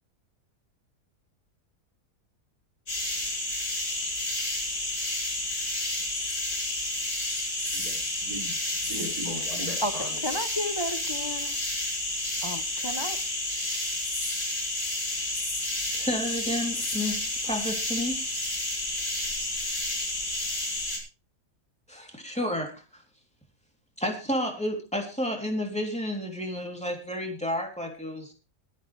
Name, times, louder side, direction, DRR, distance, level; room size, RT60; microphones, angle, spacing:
sound 1, 2.9-21.0, left 2 dB, 90° left, 6.8 m, -30 dB
voice 1, 7.7-10.2, equal, 70° right, 0 dB, 6.7 m, -39 dB
voice 2, 9.8-11.6 12.4-13.2, equal, 30° left, 9 dB, 0.5 m, -33 dB
voice 3, 15.9-18.2 21.9-22.8 24.0-28.3, left 1 dB, 5° left, 1 dB, 3.1 m, -31 dB
22.0 x 8.4 x 3.3 m, 0.32 s
omnidirectional pair, 1.7 m